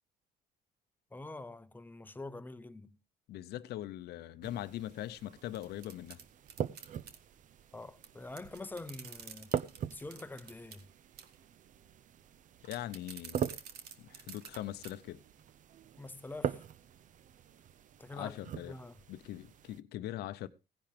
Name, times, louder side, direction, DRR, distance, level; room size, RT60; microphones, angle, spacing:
voice 1, 1.1-3.0 7.7-9.5 9.9-10.9 16.0-16.7 18.0-19.0, left 2 dB, 10° left, 0.7 m, -46 dB
voice 2, 3.3-6.2 12.6-13.4 14.0-15.2 18.1-18.8 19.1-20.5, left 13 dB, 75° left, 0.8 m, -41 dB
sound 1, 4.4-19.8, right 9 dB, 50° right, 0.6 m, -43 dB
sound 2, 5.5-7.2 8.0-8.1 8.3-10.8 11.2-11.4 12.6-14.6 14.8-14.9 15.4-15.5, right 7 dB, 70° right, 1.7 m, -49 dB
16.5 x 10.5 x 3.3 m
cardioid pair, 110°, 17 cm